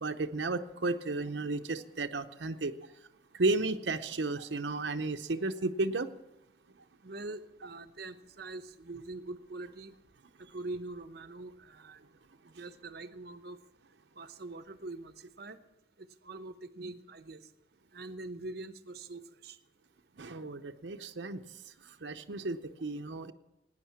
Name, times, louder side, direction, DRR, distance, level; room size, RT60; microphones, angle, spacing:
voice 1, 0.0-2.7 3.3-6.1 16.8-16.9 20.2-23.3, right 2 dB, 90° right, 6 dB, 0.8 m, -33 dB
voice 2, 7.0-9.9 10.4-12.0 12.4-13.6 14.2-15.6 16.0-17.4 17.9-19.6, right 2 dB, 60° right, 11 dB, 0.8 m, -44 dB
18.0 x 9.5 x 7.3 m, 0.91 s
head